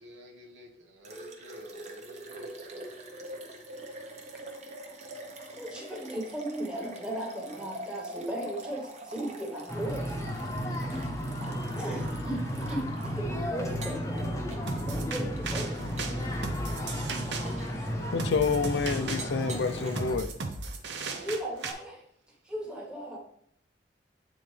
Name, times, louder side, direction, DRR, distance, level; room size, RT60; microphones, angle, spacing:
voice 1, 0.0-2.9, left 1 dB, 85° right, 0 dB, 1.3 m, -51 dB
sound 1, 1.0-13.2 13.7-14.2 14.5-14.8 15.3-15.4 16.0-16.2 16.8-17.0 17.4-17.8 18.5-18.6 19.2-19.9, right 2 dB, 40° right, 0.9 m, -44 dB
voice 2, 5.5-10.2 11.8-14.4 14.8-16.1 20.9-22.0 22.4-23.2, right 1 dB, 5° right, -2 dB, 1.3 m, -37 dB
sound 2, 9.7-20.2, equal, 15° left, 0.8 m, -33 dB
sound 3, 14.7-21.7, right 4 dB, 65° right, 0.7 m, -37 dB
voice 3, 18.1-20.3, left 5 dB, 70° left, 11 dB, 0.5 m, -28 dB
8.5 x 3.8 x 3.3 m, 0.68 s
head